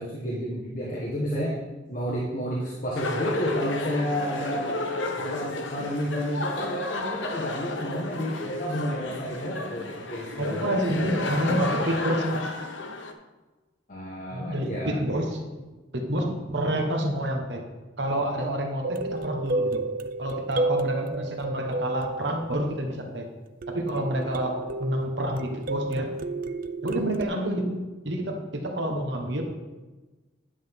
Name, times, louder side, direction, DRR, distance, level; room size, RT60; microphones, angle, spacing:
voice 1, 0.0-1.6 1.9-4.8 5.2-10.7 13.9-15.2, equal, 45° left, -5 dB, 1.4 m, -30 dB
sound 1, 3.0-13.1, left 2 dB, 90° left, 0.9 m, -32 dB
voice 2, 10.3-12.5 14.3-15.4 15.9-17.6 18.0-19.8 20.2-23.2 23.7-26.1 26.8-29.4, right 1 dB, 65° right, 2 dB, 1.3 m, -28 dB
sound 2, 18.8-23.1 23.6-27.2, right 2 dB, 50° right, 0.4 m, -31 dB
10.0 x 7.6 x 3.7 m, 1.2 s
head